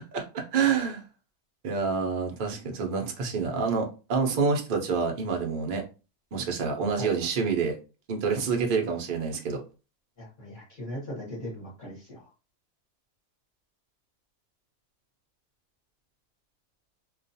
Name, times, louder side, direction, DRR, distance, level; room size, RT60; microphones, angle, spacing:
voice 1, 0.1-1.0 1.6-5.8 6.3-7.8 8.1-9.6, right 5 dB, 60° right, 2 dB, 0.5 m, -27 dB
voice 2, 10.2-12.2, equal, 40° left, -6 dB, 0.9 m, -38 dB
2.3 x 2.2 x 2.6 m, 0.32 s
omnidirectional pair, 1.5 m